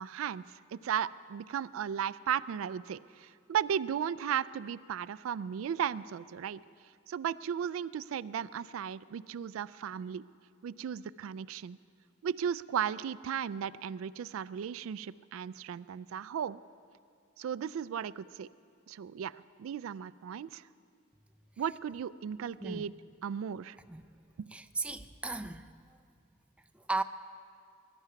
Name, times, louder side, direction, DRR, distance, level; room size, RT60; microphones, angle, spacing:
voice 1, 0.0-6.6 7.1-10.2 10.6-11.8 12.2-16.6 17.4-18.5 18.9-20.6 21.6-22.9 23.2-23.8 24.4-24.5, right 8 dB, 80° right, 17 dB, 0.3 m, -35 dB
voice 2, 24.5-26.0 26.7-27.0, right 3 dB, 5° right, 8 dB, 0.4 m, -36 dB
20.5 x 11.5 x 5.8 m, 2.3 s
head